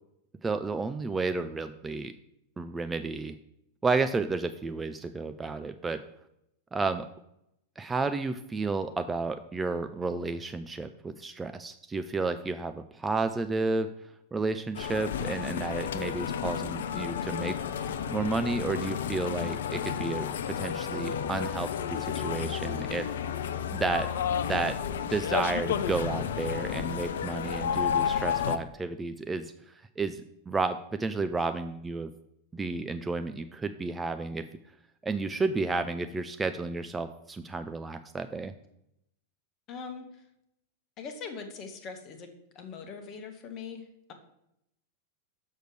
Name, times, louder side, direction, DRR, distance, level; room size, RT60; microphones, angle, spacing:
voice 1, 0.4-2.1 2.6-3.3 3.8-6.0 6.7-7.1 7.8-13.9 14.3-17.6 18.1-23.1 23.7-24.1 24.4-24.8 25.1-32.1 32.5-34.5 35.0-38.5, right 3 dB, 15° right, 9 dB, 0.4 m, -32 dB
sound 1, 14.7-28.6, left 8 dB, 60° left, 0.4 m, -31 dB
voice 2, 39.7-40.2 41.0-43.8, left 5 dB, 35° left, 6 dB, 1.2 m, -41 dB
6.4 x 6.4 x 4.7 m, 0.80 s
figure-of-eight pair, 90°, 0 cm